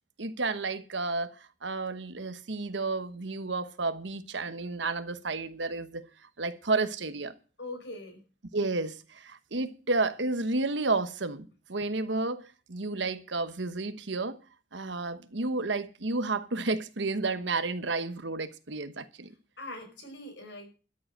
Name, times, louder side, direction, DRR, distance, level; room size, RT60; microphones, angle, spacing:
voice 1, 0.2-1.4 1.6-6.1 6.4-7.3 8.5-14.4 14.7-19.3, right 3 dB, 75° right, 1.2 m, -31 dB
voice 2, 7.6-8.2 19.6-20.7, left 2 dB, 65° left, 5.8 m, -41 dB
13.5 x 7.8 x 7.7 m
head